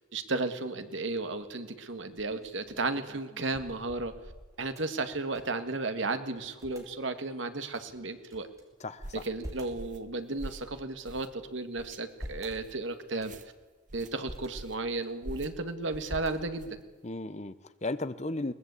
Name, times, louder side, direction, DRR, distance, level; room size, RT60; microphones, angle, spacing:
voice 1, 0.1-4.1 4.6-8.5 9.2-13.4 13.9-16.8, right 3 dB, 75° right, 8 dB, 1.9 m, -34 dB
sound 1, 2.2-5.7 5.9-6.0 6.3-6.9 7.6-8.6 9.1-9.8 10.4-11.4 11.9-12.6 13.1-13.6 14.0-14.5 15.0-15.6 16.1-16.8, equal, 15° right, 3.4 m, -47 dB
voice 2, 8.8-9.2 17.0-18.5, left 2 dB, 35° left, 12 dB, 1.0 m, -35 dB
sound 2, 9.0-9.3 9.8-10.1 10.4-10.7 11.1-11.4 11.8-12.0 12.5-12.7 13.2-13.5 13.9-14.1 14.5-14.9 15.2-15.5 15.9-16.1 16.6-16.8, right 1 dB, 40° right, 1.1 m, -44 dB
21.5 x 20.0 x 8.4 m, 1.3 s
head